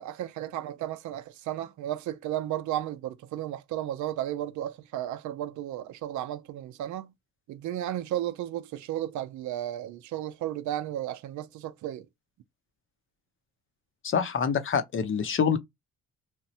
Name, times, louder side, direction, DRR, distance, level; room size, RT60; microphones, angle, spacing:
voice 1, 0.0-7.1 7.5-12.1, right 12 dB, 75° right, 0.5 m, -34 dB
voice 2, 14.0-15.6, left 7 dB, 45° left, 0.6 m, -26 dB
3.1 x 2.1 x 2.7 m
cardioid pair, 90°, 30 cm